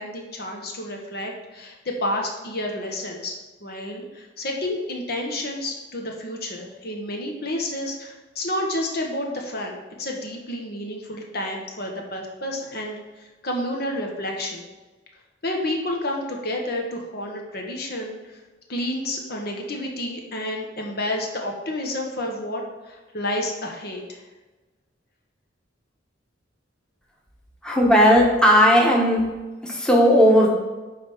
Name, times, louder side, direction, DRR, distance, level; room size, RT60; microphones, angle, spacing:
voice 1, 0.0-14.7 15.4-18.4 18.7-24.2, left 1 dB, 55° left, 1 dB, 1.3 m, -30 dB
voice 2, 27.6-29.2 29.6-30.5, equal, 5° left, -3 dB, 1.2 m, -16 dB
9.9 x 3.5 x 5.6 m, 1.2 s
head